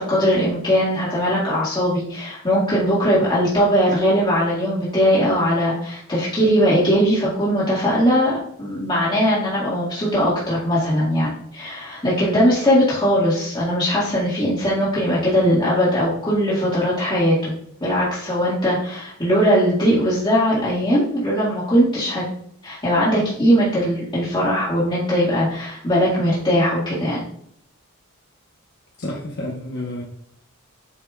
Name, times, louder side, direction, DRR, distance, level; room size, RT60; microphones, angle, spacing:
voice 1, 0.0-17.5 17.8-22.2 22.6-27.2, equal, 20° left, -9 dB, 1.9 m, -20 dB
voice 2, 29.0-30.0, left 1 dB, 50° left, -2 dB, 1.0 m, -29 dB
8.1 x 5.4 x 2.4 m, 0.67 s
head